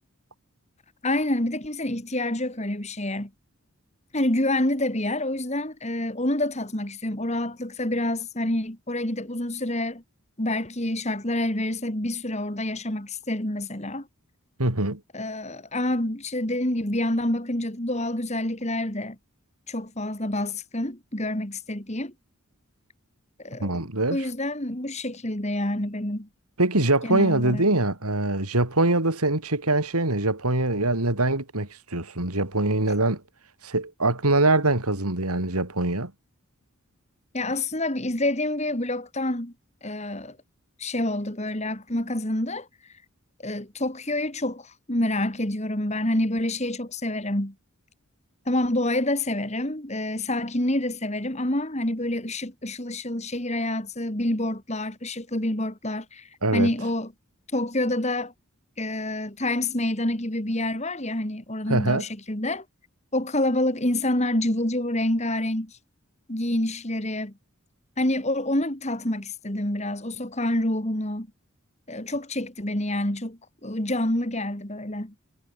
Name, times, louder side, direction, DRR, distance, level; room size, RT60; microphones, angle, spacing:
voice 1, 1.0-3.3 4.1-10.0 10.4-14.1 15.1-19.2 19.7-22.1 23.4-26.3 27.0-27.6 37.3-39.5 39.8-40.4 40.8-42.7 43.4-47.5 48.5-57.1 57.5-58.3 58.8-62.6 63.1-65.8 66.3-67.3 68.0-71.3 71.9-75.1, left 1 dB, 30° left, 2.6 m, -27 dB
voice 2, 14.6-15.0 23.6-24.2 26.6-33.2 33.6-36.1 56.4-56.7 61.7-62.0, right 2 dB, 90° right, 4.4 m, -23 dB
head